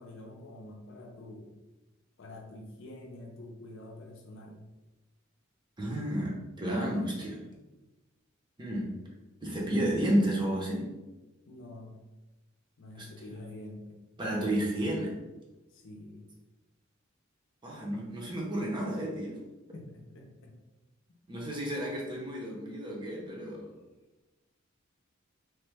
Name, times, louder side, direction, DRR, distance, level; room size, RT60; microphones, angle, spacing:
voice 1, 0.0-1.5 2.2-4.6 11.5-12.0 12.8-14.0 15.7-16.3 19.7-20.5, left 1 dB, 65° left, 1 dB, 0.6 m, -47 dB
voice 2, 5.8-7.4 8.6-8.9 9.4-10.9 13.0-13.1 14.2-15.1 17.6-19.4 21.3-23.7, right 1 dB, 20° right, -3 dB, 0.7 m, -31 dB
3.1 x 2.1 x 3.3 m, 1.1 s
head